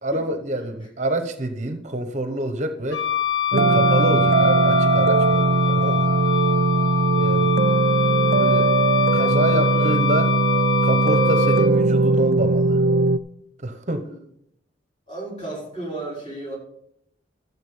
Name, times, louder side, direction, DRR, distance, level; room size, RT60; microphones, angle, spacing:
voice 1, 0.0-3.1 3.5-6.1 7.1-7.5 8.3-8.7 9.1-10.3 10.8-12.8 13.6-14.1, right 1 dB, 40° right, 8 dB, 0.9 m, -27 dB
Wind instrument woodwind instrument, 2.9-11.7, left 11 dB, 80° left, 1.3 m, -25 dB
sound 1, 3.5-13.2, right 4 dB, 55° right, 0.4 m, -19 dB
voice 2, 9.0-10.0 14.0-14.2 15.1-16.6, right 2 dB, 30° left, -4 dB, 5.2 m, -35 dB
13.0 x 7.3 x 5.6 m, 0.72 s
head